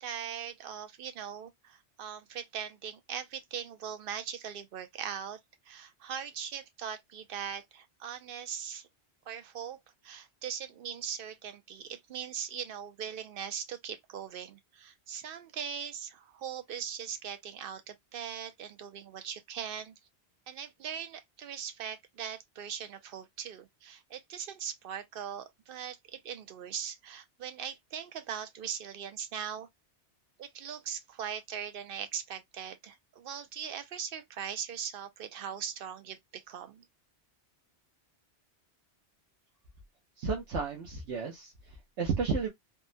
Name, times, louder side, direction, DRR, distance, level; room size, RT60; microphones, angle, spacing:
voice 1, 0.0-5.4 5.7-8.9 9.3-9.8 10.0-19.9 20.5-29.7 30.4-36.8, right 8 dB, 60° right, 0.7 m, -40 dB
voice 2, 40.2-42.5, right 5 dB, 80° right, 1.1 m, -33 dB
3.5 x 2.1 x 2.5 m
omnidirectional pair, 1.2 m